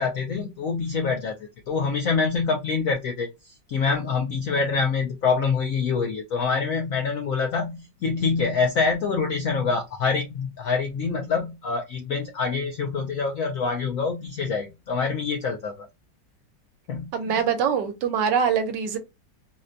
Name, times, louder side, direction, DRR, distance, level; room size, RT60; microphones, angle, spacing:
voice 1, 0.0-15.9 16.9-17.4, left 5 dB, 75° left, 0.7 m, -26 dB
voice 2, 17.1-19.0, right 7 dB, 75° right, 1.3 m, -23 dB
4.0 x 2.2 x 2.5 m
omnidirectional pair, 2.0 m